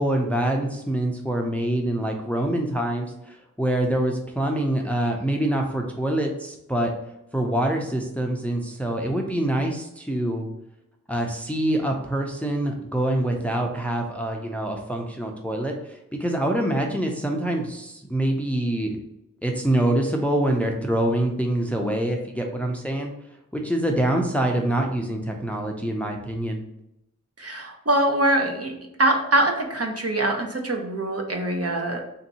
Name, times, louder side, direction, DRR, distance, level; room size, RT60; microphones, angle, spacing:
voice 1, 0.0-6.9 7.3-10.5 11.1-19.0 19.4-23.1 23.5-26.6, right 1 dB, 5° left, 2 dB, 0.6 m, -25 dB
voice 2, 27.4-28.7 29.0-32.0, right 1 dB, 45° right, 2 dB, 0.7 m, -23 dB
3.4 x 2.7 x 4.1 m, 0.84 s
wide cardioid pair, 55°, 32 cm